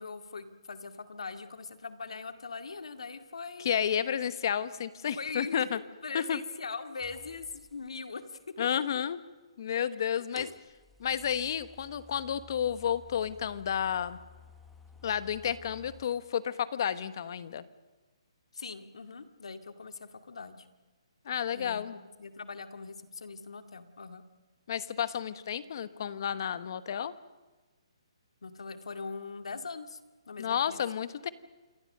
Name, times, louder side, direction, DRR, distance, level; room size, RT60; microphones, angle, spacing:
voice 1, 0.0-3.7 5.2-8.7 10.2-10.5 18.5-20.7 21.5-24.2 28.4-30.0 30.3-30.8, left 4 dB, 80° left, 8 dB, 2.1 m, -41 dB
voice 2, 3.6-5.8 6.1-6.4 8.6-9.2 9.6-10.5 11.0-14.2 15.0-17.6 21.2-22.0 24.7-27.1 30.4-31.3, left 8 dB, 40° left, 14 dB, 1.1 m, -31 dB
sound 1, 7.0-8.1 9.4-9.5 10.3-16.1, left 3 dB, ahead, 1.1 m, -55 dB
27.5 x 21.5 x 6.7 m, 1.3 s
hypercardioid pair, 170°, 3 cm